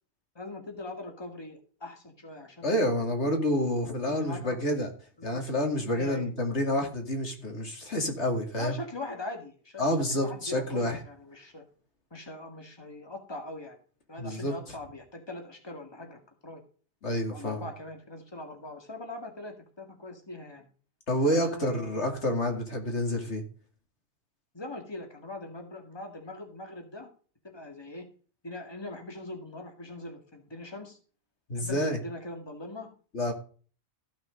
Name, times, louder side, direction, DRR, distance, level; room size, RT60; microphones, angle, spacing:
voice 1, 0.4-3.1 4.1-4.6 5.2-5.4 5.9-6.3 8.6-11.6 12.1-13.8 14.1-16.6 17.3-20.7 21.2-22.3 24.5-27.1 27.4-28.1 28.4-31.0 31.5-32.9, left 2 dB, 25° left, 3 dB, 2.2 m, -41 dB
voice 2, 2.6-4.9 5.2-8.7 9.8-11.0 14.2-14.7 17.0-17.7 21.1-23.4 31.5-32.0 33.1-33.3, left 1 dB, 85° left, 3 dB, 2.8 m, -28 dB
15.0 x 6.2 x 5.1 m, 0.40 s
omnidirectional pair, 1.1 m